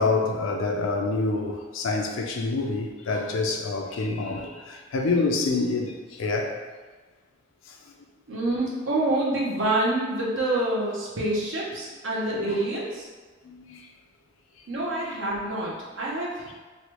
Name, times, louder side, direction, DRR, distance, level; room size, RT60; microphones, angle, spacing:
voice 1, 0.0-6.5 12.3-12.6 13.5-13.8, left 3 dB, 85° left, 2 dB, 0.4 m, -27 dB
voice 2, 8.3-13.1 14.7-16.5, right 1 dB, 75° right, -4 dB, 0.8 m, -27 dB
3.1 x 2.3 x 2.9 m, 1.4 s
head